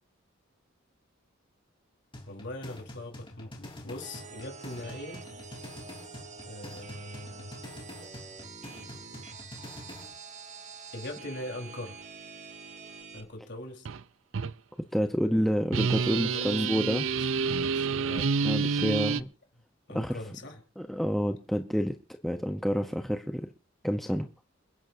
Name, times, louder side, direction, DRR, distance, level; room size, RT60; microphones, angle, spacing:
sound 1, 2.1-10.1, left 1 dB, 25° left, 3.8 m, -46 dB
voice 1, 2.3-5.2 6.5-7.5 10.9-12.0 13.1-13.9 15.3-15.4 16.3-17.2 17.5-18.4 19.9-20.6, left 1 dB, 60° left, 1 dB, 4.0 m, -41 dB
sound 2, 4.0-13.2, right 5 dB, 35° right, 1.8 m, -46 dB
sound 3, 13.8-14.0 14.3-14.5 15.7-19.2, right 5 dB, 70° right, 0.6 m, -28 dB
voice 2, 14.9-17.1 18.4-19.3 19.9-20.2 20.8-23.5 23.8-24.3, equal, ahead, 5 dB, 0.8 m, -28 dB
28.5 x 10.5 x 2.7 m, 0.32 s
head